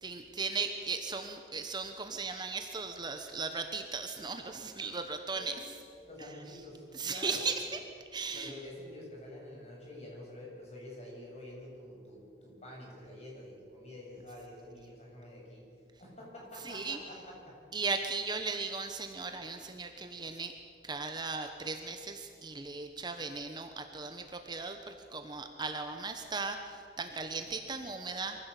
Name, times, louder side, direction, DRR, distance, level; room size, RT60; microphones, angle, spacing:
voice 1, 0.0-5.7 6.9-7.8 8.1-8.5 16.6-17.0 17.7-20.5 20.8-28.5, right 4 dB, 25° right, 6 dB, 1.1 m, -37 dB
voice 2, 5.3-5.7 6.0-7.5 8.3-15.7 16.0-17.6 27.6-27.7, left 1 dB, 40° left, -3 dB, 7.2 m, -48 dB
24.0 x 15.5 x 8.3 m, 2.4 s
head